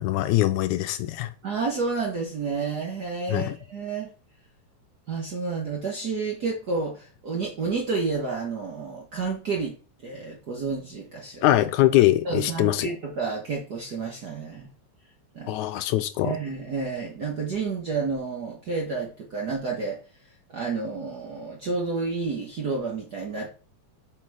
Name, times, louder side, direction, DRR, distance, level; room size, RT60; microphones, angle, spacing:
voice 1, 0.0-1.3 3.3-3.6 11.4-12.9 15.5-16.4, left 15 dB, 80° left, 1.9 m, -22 dB
voice 2, 1.4-4.1 5.1-9.8 10.0-11.5 12.2-14.7 15.3-15.6 16.2-20.0 20.5-23.5, right 4 dB, 80° right, 0.9 m, -30 dB
6.3 x 4.4 x 4.7 m
omnidirectional pair, 3.5 m